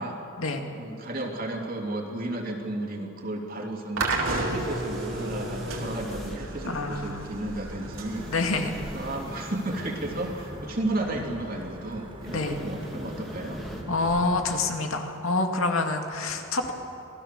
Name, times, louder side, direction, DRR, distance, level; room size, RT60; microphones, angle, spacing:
voice 1, 0.7-8.3 8.9-13.6, right 1 dB, 45° right, 1 dB, 2.9 m, -33 dB
sound 1, 4.0-11.0, right 2 dB, 75° right, 3.2 m, -33 dB
sound 2, 4.4-6.4 8.1-10.5 12.2-13.8, equal, ahead, 2.4 m, -41 dB
Wind / Thunder / Rain, 6.4-14.7, right 1 dB, 25° right, 3.1 m, -43 dB
voice 2, 6.6-7.3 8.3-8.7 12.3-12.6 13.9-16.7, left 3 dB, 90° left, 4 dB, 2.2 m, -27 dB
27.0 x 19.0 x 6.8 m, 2.8 s
head